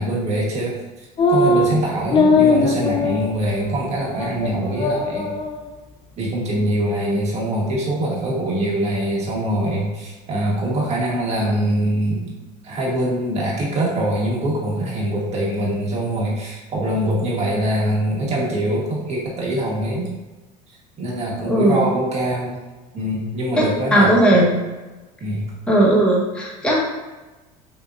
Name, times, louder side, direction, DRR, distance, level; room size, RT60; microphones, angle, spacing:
voice 1, 0.0-5.4 6.2-12.3 12.6-20.1 21.0-22.6 22.9-24.5 25.2-25.5, right 1 dB, 40° right, -4 dB, 1.5 m, -23 dB
sound 1, 1.2-1.7 2.1-3.3 3.6-3.7 4.2-4.5 4.8-5.6, left 3 dB, 30° left, 0.4 m, -18 dB
voice 2, 21.4-21.9 23.9-24.5 25.7-26.8, right 1 dB, 5° left, -6 dB, 1.4 m, -16 dB
6.1 x 2.7 x 2.6 m, 1.2 s
cardioid pair, 130°, 18 cm